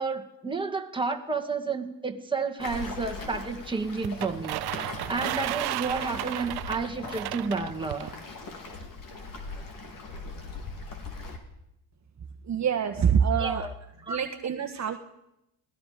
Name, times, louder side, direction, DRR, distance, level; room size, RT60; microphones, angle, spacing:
voice 1, 0.0-8.1 13.4-13.7 14.0-14.2, right 4 dB, 10° right, 2 dB, 2.2 m, -31 dB
Waves surf, 2.6-11.4, left 3 dB, 45° left, 4.2 m, -40 dB
sound 1, 4.0-8.1, right 17 dB, 60° right, 0.7 m, -34 dB
voice 2, 12.5-13.7 14.1-15.0, right 7 dB, 40° right, 5 dB, 1.5 m, -25 dB
27.5 x 19.0 x 5.2 m, 0.83 s
cardioid pair, 110°, 44 cm